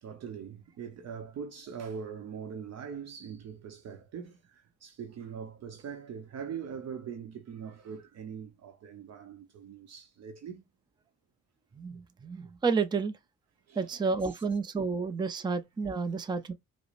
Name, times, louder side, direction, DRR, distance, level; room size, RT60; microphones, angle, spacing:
voice 1, 0.0-10.6 13.7-14.4, right 7 dB, 60° right, 0.7 m, -42 dB
voice 2, 11.7-13.2 13.8-16.5, right 4 dB, 15° right, 0.4 m, -30 dB
4.7 x 2.0 x 2.5 m
cardioid pair, 90°, 30 cm